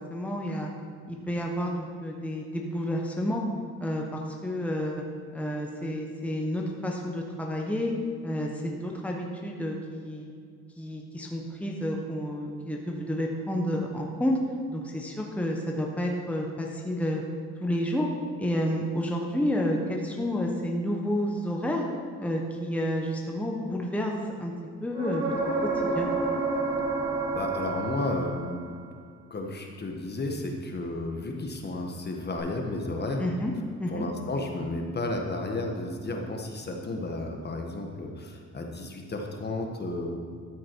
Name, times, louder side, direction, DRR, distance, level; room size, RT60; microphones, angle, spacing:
voice 1, 0.1-0.7 1.1-3.4 3.8-5.0 5.3-7.9 8.2-10.3 10.8-14.4 14.7-17.2 17.6-18.1 18.4-21.9 22.2-24.1 24.4-24.5 24.8-25.3 25.9-26.1 33.2-33.5 33.8-34.1, equal, 5° left, 0 dB, 1.1 m, -30 dB
sound 1, 24.9-28.7 32.4-32.5, right 3 dB, 15° right, 2.8 m, -29 dB
voice 2, 27.3-28.7 29.3-33.2 33.9-40.1, left 2 dB, 35° left, 2 dB, 1.4 m, -32 dB
13.0 x 6.0 x 4.7 m, 2.2 s
cardioid pair, 90°, 30 cm